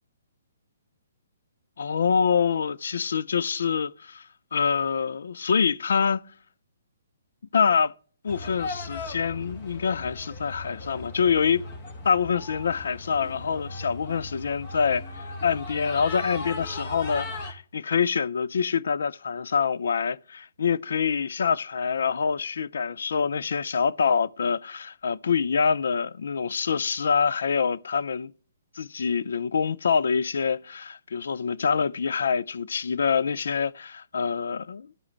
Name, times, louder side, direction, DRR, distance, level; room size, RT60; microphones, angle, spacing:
voice 1, 1.8-4.2 4.5-6.2 7.5-7.9 8.2-11.7 12.0-28.3 28.8-35.0, left 6 dB, 65° left, 0.4 m, -26 dB
sound 1, 8.3-17.5, left 2 dB, 45° left, 2.0 m, -38 dB
13.5 x 4.8 x 3.2 m
figure-of-eight pair, 130°, 0 cm